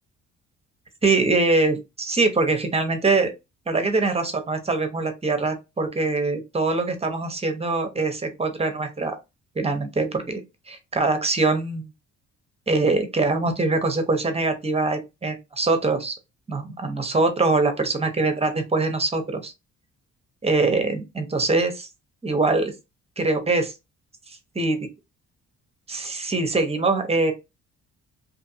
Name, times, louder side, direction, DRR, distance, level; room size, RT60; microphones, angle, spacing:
voice 1, 1.0-3.3 3.7-9.2 9.6-10.4 10.7-11.9 12.7-16.1 16.5-19.5 20.4-21.9 22.2-22.7 23.2-23.7 24.3-24.8 25.9-27.3, right 3 dB, 20° right, 0.8 m, -23 dB
2.7 x 2.5 x 2.7 m
cardioid pair, 90°, 30 cm